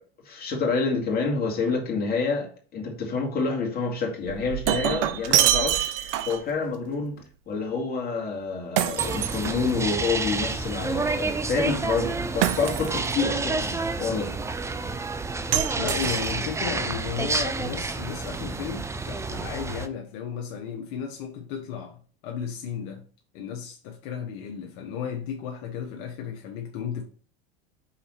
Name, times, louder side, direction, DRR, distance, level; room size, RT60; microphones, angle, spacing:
voice 1, 0.2-14.3, left 4 dB, 30° left, 2.3 m, -28 dB
Shatter, 4.3-6.5 8.8-10.0 12.4-13.2 15.5-16.6, right 12 dB, 55° right, 0.7 m, -26 dB
sound 1, 9.0-19.9, right 3 dB, 10° right, 0.5 m, -29 dB
voice 2, 15.8-22.0 22.2-23.0 23.3-27.0, left 8 dB, 60° left, 1.2 m, -34 dB
5.8 x 4.1 x 4.2 m
supercardioid pair, 105°, 31 cm